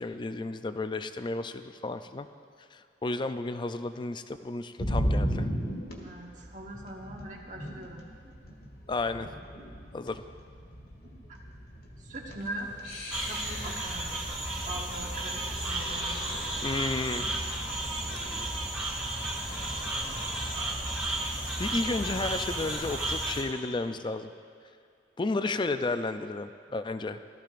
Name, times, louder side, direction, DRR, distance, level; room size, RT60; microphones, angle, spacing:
voice 1, 0.0-2.3 2.7-5.5 8.9-9.3 9.9-10.2 16.0-16.2 16.6-17.3 18.2-18.5 19.5-19.8 20.2-20.3 21.6-24.3 25.2-27.2, left 3 dB, 25° left, 10 dB, 0.4 m, -33 dB
sound 1, 4.8-22.4, equal, 60° left, 1.9 m, -38 dB
voice 2, 6.0-8.3 12.0-12.7 13.3-14.3 14.6-16.6 23.9-24.0, right 1 dB, 45° right, -1 dB, 1.4 m, -42 dB
sound 2, 12.4-23.4, left 2 dB, 85° left, 2.7 m, -47 dB
sound 3, 13.1-23.4, right 2 dB, 10° right, 2.0 m, -33 dB
17.5 x 13.5 x 2.5 m, 2.4 s
head